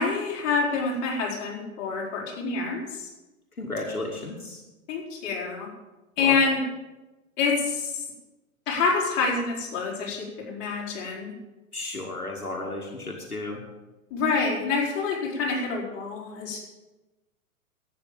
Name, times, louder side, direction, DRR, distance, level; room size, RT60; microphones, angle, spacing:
voice 1, 0.0-3.1 4.9-5.7 6.2-6.6 7.4-8.0 8.7-11.3 14.1-16.6, left 4 dB, 35° left, -4 dB, 4.9 m, -27 dB
voice 2, 3.6-4.6 6.2-6.4 11.7-13.6, left 2 dB, 85° left, 1 dB, 2.1 m, -33 dB
12.0 x 9.0 x 8.7 m, 1.1 s
figure-of-eight pair, 105°, 43 cm